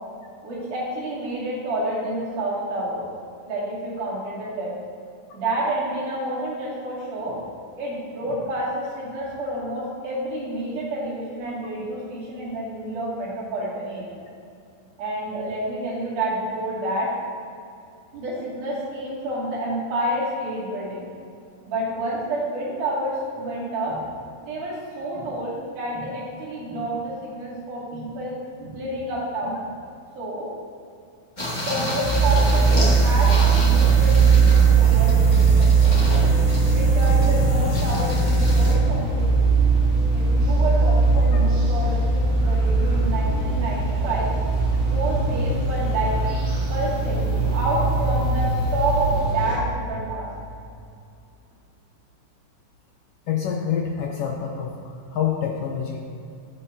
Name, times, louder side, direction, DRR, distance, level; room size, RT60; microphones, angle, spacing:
voice 1, 0.4-3.1 3.5-4.8 5.3-7.4 7.8-14.2 15.0-17.1 18.1-21.1 21.7-24.0 24.4-29.7 30.2-30.5 31.6-35.9 36.7-39.5 39.9-44.3 44.9-46.4 46.7-47.3 47.5-50.3, right 1 dB, 80° right, -7 dB, 3.9 m, -29 dB
sound 1, 31.4-38.7, left 1 dB, 30° left, 0.8 m, -28 dB
sound 2, 32.0-49.6, right 4 dB, 45° right, 2.4 m, -19 dB
voice 2, 53.3-56.0, left 8 dB, 80° left, 0 dB, 1.3 m, -27 dB
16.5 x 5.6 x 2.8 m, 2.5 s
omnidirectional pair, 3.6 m